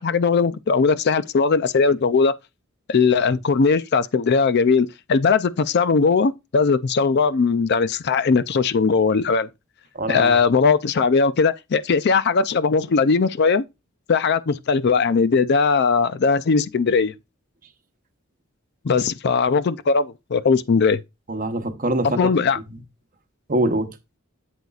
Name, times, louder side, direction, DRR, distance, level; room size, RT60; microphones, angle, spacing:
voice 1, 0.0-2.3 2.9-9.5 10.1-13.6 14.1-17.1 18.8-21.0 22.1-22.6, left 5 dB, 50° left, 0.4 m, -19 dB
voice 2, 9.9-10.4 21.3-22.3 22.7-22.8 23.5-24.0, right 1 dB, 40° right, 0.9 m, -24 dB
8.1 x 8.0 x 2.4 m
head